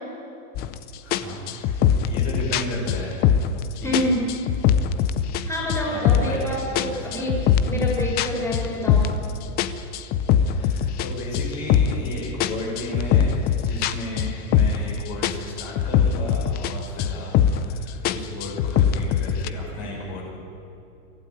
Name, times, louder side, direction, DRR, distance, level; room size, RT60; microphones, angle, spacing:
sound 1, 0.5-0.8 1.1-3.6 3.9-5.4 5.7-6.4 6.7-9.3 9.6-12.1 12.4-14.9 15.2-16.7 17.0-17.7 18.0-19.5, left 8 dB, 20° left, 0.6 m, -21 dB
voice 1, 1.0-3.2 3.8-4.1 5.9-6.4 6.7-7.7 10.4-20.2, left 1 dB, 40° left, -4 dB, 6.6 m, -34 dB
voice 2, 3.8-4.2 5.5-9.2, equal, 5° left, -3 dB, 5.2 m, -27 dB
24.0 x 15.5 x 9.2 m, 2.7 s
supercardioid pair, 150°, 45 cm